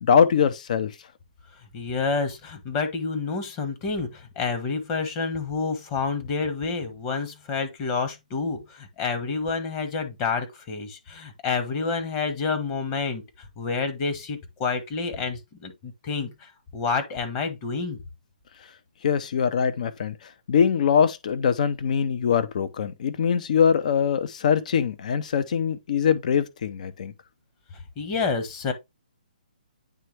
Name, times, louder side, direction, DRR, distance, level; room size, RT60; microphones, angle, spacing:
voice 1, 0.0-0.9 19.0-27.1, left 7 dB, 55° left, 0.8 m, -23 dB
voice 2, 1.7-13.2 13.6-18.0 28.0-28.7, left 4 dB, 30° left, 1.4 m, -29 dB
9.0 x 3.5 x 3.3 m
hypercardioid pair, 140°, 5 cm